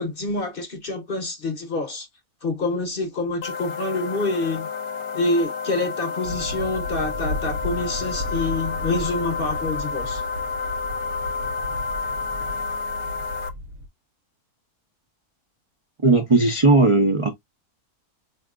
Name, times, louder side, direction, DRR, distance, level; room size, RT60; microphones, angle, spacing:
voice 1, 0.0-2.1 2.4-4.7 5.1-10.2, left 2 dB, 45° left, 0.9 m, -27 dB
sound 1, 3.4-13.5, left 5 dB, 70° left, 1.0 m, -30 dB
sound 2, 6.2-13.9, left 1 dB, 70° right, 1.1 m, -34 dB
voice 2, 16.0-17.3, right 3 dB, 45° right, 0.4 m, -17 dB
4.5 x 2.8 x 2.4 m
omnidirectional pair, 1.7 m